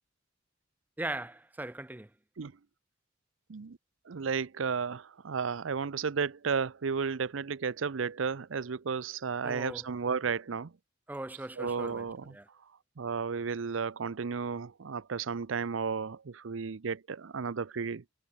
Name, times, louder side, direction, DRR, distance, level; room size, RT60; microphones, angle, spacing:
voice 1, 1.0-2.1 9.4-9.9 11.1-12.5, right 2 dB, 10° right, 0.5 m, -39 dB
voice 2, 4.1-10.7 11.6-12.3 13.0-18.0, right 5 dB, 85° right, 0.6 m, -33 dB
head